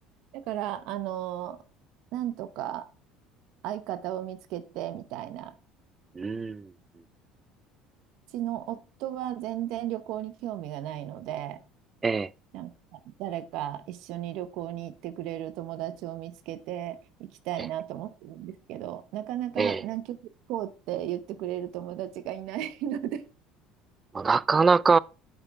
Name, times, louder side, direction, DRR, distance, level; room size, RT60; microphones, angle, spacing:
voice 1, 0.3-1.6 2.1-2.9 3.6-5.5 8.3-11.6 12.5-20.2 20.5-23.2, right 12 dB, 65° right, 0.9 m, -35 dB
voice 2, 6.2-6.7 12.0-12.3 19.6-19.8 24.1-25.0, right 4 dB, 20° right, 0.3 m, -23 dB
8.1 x 5.7 x 4.7 m
cardioid pair, 145°, 0 cm